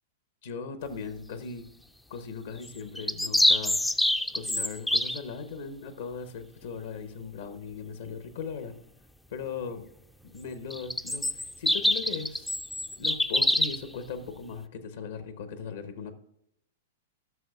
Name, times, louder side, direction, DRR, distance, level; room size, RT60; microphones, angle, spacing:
voice 1, 0.4-1.6 2.1-3.9 4.3-8.7 9.3-9.8 10.2-12.5 13.0-16.1, left 5 dB, 70° left, 9 dB, 0.9 m, -38 dB
sound 1, 2.7-5.2 10.7-13.8, left 1 dB, 5° left, 0.4 m, -26 dB
14.0 x 6.2 x 2.4 m, 0.75 s
hypercardioid pair, 110°, 0 cm